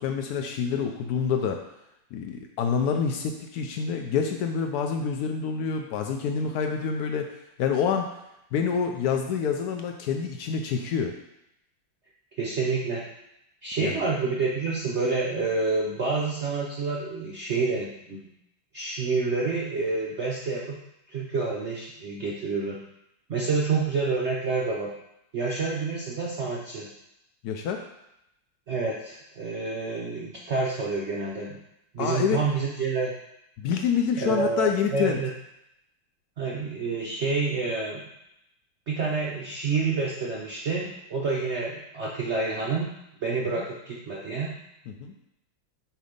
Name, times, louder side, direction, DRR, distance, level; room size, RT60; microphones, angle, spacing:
voice 1, 0.0-1.6 2.1-7.3 7.6-8.1 8.5-11.1 13.8-14.0 27.4-27.8 32.0-32.4 33.6-35.2 43.6-43.7 44.9-45.1, left 6 dB, 85° left, 4 dB, 0.8 m, -27 dB
voice 2, 12.4-13.0 13.6-18.2 18.7-20.8 21.1-22.8 23.3-24.9 25.3-26.9 28.7-31.6 31.9-33.1 34.2-35.3 36.4-38.0 38.9-42.9 43.2-44.5, right 4 dB, 90° right, -3 dB, 0.6 m, -28 dB
7.7 x 2.8 x 5.1 m, 0.84 s
omnidirectional pair, 2.2 m